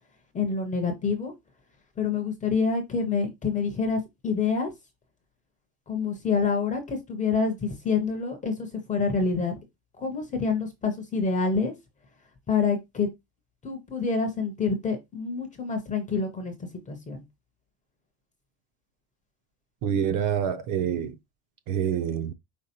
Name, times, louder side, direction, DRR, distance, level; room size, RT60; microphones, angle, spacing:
voice 1, 0.3-1.3 2.0-4.7 5.9-9.5 10.0-11.7 12.5-13.1 13.6-16.5 16.9-17.2, left 5 dB, 15° left, 0.4 m, -27 dB
voice 2, 19.8-21.1 21.7-22.3, right 8 dB, 45° right, 0.4 m, -26 dB
5.2 x 3.7 x 2.8 m
cardioid pair, 175°, 50 cm